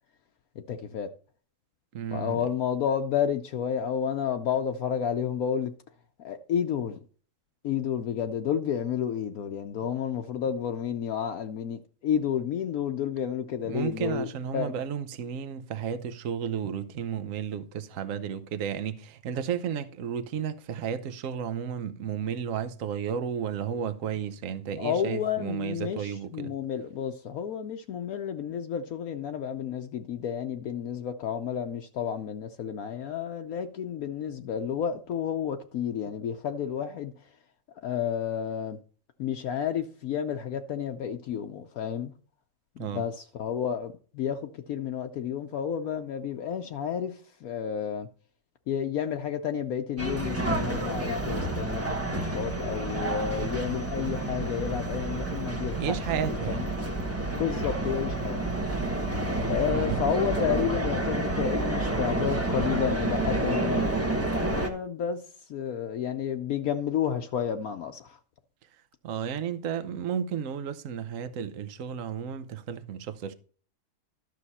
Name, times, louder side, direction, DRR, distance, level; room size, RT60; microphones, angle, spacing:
voice 1, 0.7-1.1 2.1-5.7 6.2-7.0 7.6-14.7 24.8-37.1 37.8-38.8 39.2-42.1 42.8-48.1 48.7-56.7 57.3-58.4 59.5-65.2 65.5-68.2, left 8 dB, 70° left, 1.1 m, -31 dB
voice 2, 1.9-2.4 13.6-26.5 42.8-43.0 55.8-56.6 59.6-60.0 69.0-73.3, right 8 dB, 60° right, 1.2 m, -33 dB
sound 1, 50.0-64.7, right 2 dB, 10° right, 1.0 m, -29 dB
12.0 x 6.6 x 4.2 m
omnidirectional pair, 1.7 m